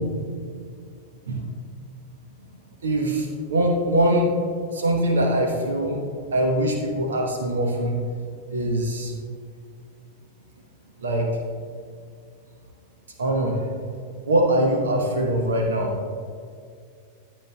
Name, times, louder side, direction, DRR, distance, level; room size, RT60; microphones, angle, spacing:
voice 1, 2.8-4.3 4.7-6.0 6.3-8.0 8.5-9.1 11.0-11.3 13.2-13.7 14.3-16.0, right 1 dB, 65° right, 2 dB, 0.9 m, -22 dB
14.0 x 7.4 x 2.3 m, 2.3 s
figure-of-eight pair, 90°, 0 cm